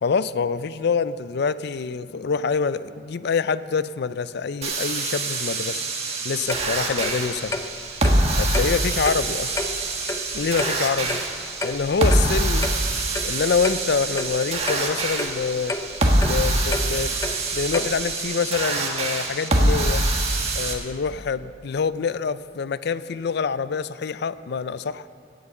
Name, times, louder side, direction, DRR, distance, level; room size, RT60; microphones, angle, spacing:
voice 1, 0.0-5.8 6.2-7.6 8.4-9.6 10.3-11.2 11.6-12.7 13.2-15.7 16.2-17.1 17.5-20.0 20.6-25.1, left 5 dB, 65° left, 15 dB, 0.4 m, -26 dB
sound 1, 4.6-20.7, right 2 dB, 35° right, 1.6 m, -24 dB
Clock, 6.5-18.2, left 2 dB, 20° left, 0.6 m, -32 dB
16.5 x 8.0 x 7.1 m, 2.3 s
head